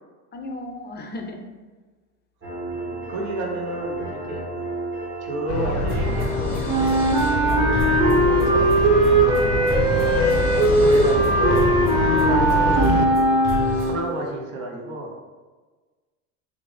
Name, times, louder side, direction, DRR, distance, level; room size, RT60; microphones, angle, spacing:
voice 1, 0.3-1.4, left 2 dB, 25° left, 2 dB, 0.4 m, -34 dB
sound 1, 2.4-13.9, right 1 dB, 30° right, 1.2 m, -30 dB
voice 2, 2.7-4.5 5.2-7.1 7.4-8.7 9.2-9.6 10.7-11.7 12.2-13.2 13.7-15.1, right 2 dB, 65° right, 1 dB, 0.8 m, -31 dB
sound 2, 5.5-13.1, left 4 dB, 85° left, 0.6 m, -26 dB
Wind instrument woodwind instrument, 6.7-14.0, right 2 dB, 15° right, 0.8 m, -19 dB
3.4 x 2.5 x 3.2 m, 1.3 s
hypercardioid pair, 75°, 39 cm